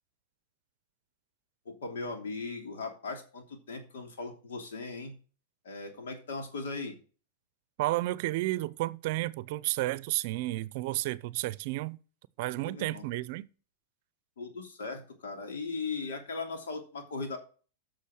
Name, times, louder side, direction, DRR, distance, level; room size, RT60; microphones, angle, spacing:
voice 1, 1.6-5.1 5.6-7.0 12.6-13.0 14.4-17.4, left 4 dB, 85° left, 2.9 m, -38 dB
voice 2, 7.8-12.0 12.4-13.5, right 18 dB, 55° right, 0.6 m, -32 dB
8.3 x 6.4 x 6.5 m
hypercardioid pair, 130°, 0 cm